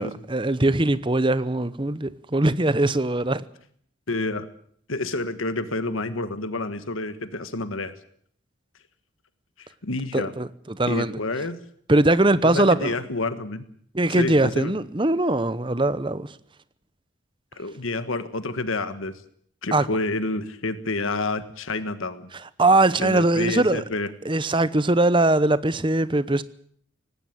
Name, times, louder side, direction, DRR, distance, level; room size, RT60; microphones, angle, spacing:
voice 1, 0.0-3.4 10.1-11.1 11.9-12.9 13.9-16.3 19.7-19.9 22.6-23.8 24.2-26.4, right 2 dB, 25° right, 0.8 m, -21 dB
voice 2, 4.1-4.5 4.9-7.9 9.6-10.3 10.8-11.6 12.4-13.6 14.2-14.7 17.5-19.1 19.6-22.3 23.0-24.1, left 2 dB, 80° left, 1.4 m, -29 dB
19.0 x 17.0 x 9.2 m
head